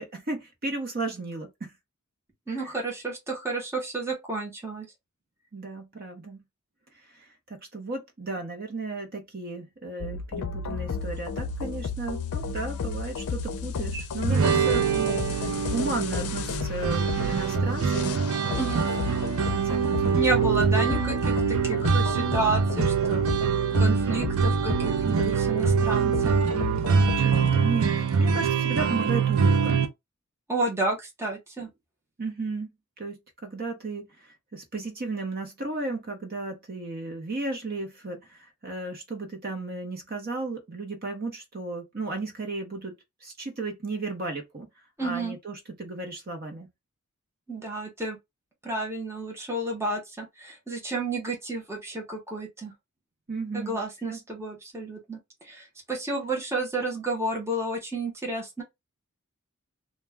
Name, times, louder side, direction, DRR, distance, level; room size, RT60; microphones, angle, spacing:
voice 1, 0.0-1.7 2.5-2.7 5.5-6.4 7.1-18.2 18.7-18.9 19.5-20.2 26.9-29.8 32.2-32.7 33.0-44.7 45.0-46.7 53.3-53.8 54.1-54.2, right 3 dB, 45° right, 0.7 m, -34 dB
voice 2, 2.5-4.9 18.6-18.9 20.1-23.3 23.8-26.5 30.5-31.7 45.0-45.4 47.5-48.2 48.6-52.7 53.5-58.6, right 2 dB, 10° right, 0.7 m, -31 dB
sound 1, 10.0-27.6, left 4 dB, 80° left, 0.5 m, -33 dB
sound 2, 14.2-29.9, right 6 dB, 75° right, 0.5 m, -24 dB
2.2 x 2.2 x 3.4 m
head